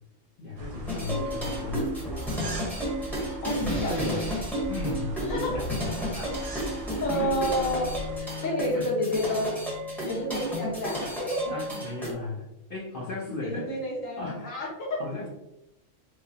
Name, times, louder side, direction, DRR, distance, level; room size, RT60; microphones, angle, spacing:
voice 1, 0.4-1.9 3.5-4.3 4.7-5.7 6.0-6.6 6.8-7.3 8.7-8.8 10.9-12.4 12.7-13.7 14.2-14.4 15.0-15.3, left 3 dB, 50° left, -6 dB, 0.8 m, -36 dB
sound 1, 0.6-8.2, right 1 dB, 55° right, 0.4 m, -39 dB
sound 2, 0.9-12.1, equal, ahead, 0.8 m, -33 dB
voice 2, 3.4-4.1 5.2-5.6 6.6-7.9 8.2-9.6 10.0-11.5 13.4-15.0, equal, 85° left, -4 dB, 1.5 m, -30 dB
4.6 x 2.0 x 2.7 m, 0.89 s
omnidirectional pair, 1.3 m